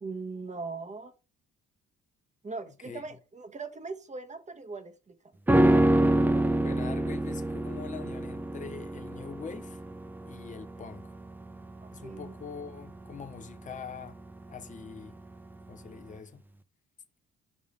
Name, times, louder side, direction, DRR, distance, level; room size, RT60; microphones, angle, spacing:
voice 1, 0.0-1.1 2.4-5.2 11.8-12.3, right 4 dB, 25° right, 0.9 m, -40 dB
sound 1, 5.5-14.9 15.2-15.3, right 1 dB, 5° right, 0.3 m, -27 dB
voice 2, 6.6-9.8 10.2-11.1 11.9-14.2 14.5-15.2 15.7-16.4, left 6 dB, 25° left, 0.7 m, -43 dB
5.3 x 3.5 x 5.0 m
cardioid pair, 90°, 30 cm